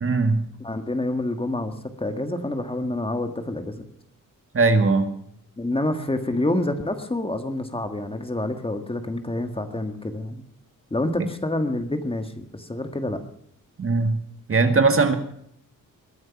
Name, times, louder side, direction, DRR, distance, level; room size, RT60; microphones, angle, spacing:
voice 1, 0.0-0.4 4.5-5.1 13.8-14.2 14.5-15.2, right 3 dB, 40° right, 7 dB, 2.0 m, -19 dB
voice 2, 0.6-3.9 5.6-10.4 10.9-13.2, left 1 dB, 15° left, 7 dB, 1.7 m, -27 dB
21.5 x 9.5 x 5.9 m, 0.71 s
wide cardioid pair, 130°, 33 cm